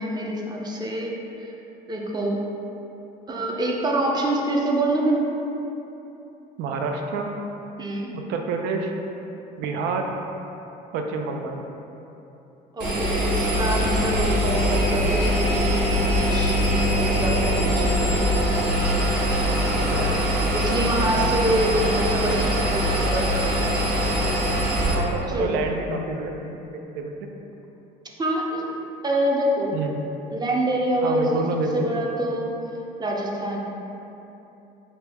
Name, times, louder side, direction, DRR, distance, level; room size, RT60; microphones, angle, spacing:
voice 1, 0.0-1.5 1.9-2.4 3.3-5.2 7.8-8.1 12.7-15.8 16.1-18.0 20.5-23.7 25.3-25.6 28.2-28.6 29.0-29.8 30.3-31.2 31.7-32.5 33.0-33.6, right 1 dB, 25° right, -1 dB, 0.5 m, -26 dB
voice 2, 6.6-7.3 8.1-8.9 9.6-10.1 10.9-11.6 19.5-20.2 24.9-27.3 29.7-30.0 31.0-31.9, right 4 dB, 90° right, 3 dB, 0.4 m, -28 dB
Engine, 12.8-24.9, equal, 65° right, 1.0 m, -22 dB
4.2 x 2.3 x 3.4 m, 3.0 s
cardioid pair, 110°, 17 cm